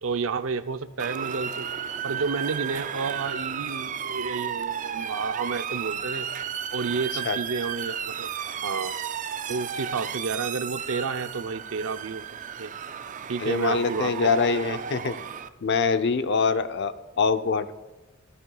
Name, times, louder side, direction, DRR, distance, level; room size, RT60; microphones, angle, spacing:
voice 1, 0.0-1.7 2.0-6.3 6.7-8.3 8.6-8.9 9.5-12.2 12.6-12.7 13.3-14.8, right 4 dB, 80° right, 11 dB, 0.6 m, -31 dB
Motor vehicle (road) / Siren, 1.0-15.5, right 8 dB, 40° right, 0.5 m, -33 dB
voice 2, 13.4-15.1 15.6-17.7, left 5 dB, 60° left, 11 dB, 0.6 m, -24 dB
15.0 x 14.0 x 2.3 m, 1.2 s
head